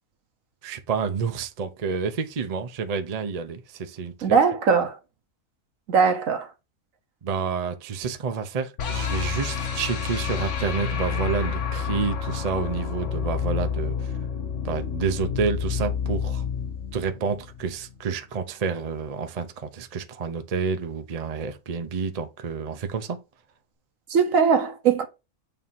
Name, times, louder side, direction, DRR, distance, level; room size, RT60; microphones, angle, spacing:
voice 1, 0.6-4.1 7.2-14.1 14.6-16.5 16.9-23.2, right 5 dB, 40° right, 0.5 m, -29 dB
voice 2, 4.2-5.0 5.9-6.5 24.1-25.0, right 6 dB, 65° right, 1.4 m, -20 dB
sound 1, 8.8-17.9, left 7 dB, 55° left, 1.2 m, -29 dB
6.9 x 2.7 x 5.5 m
omnidirectional pair, 1.5 m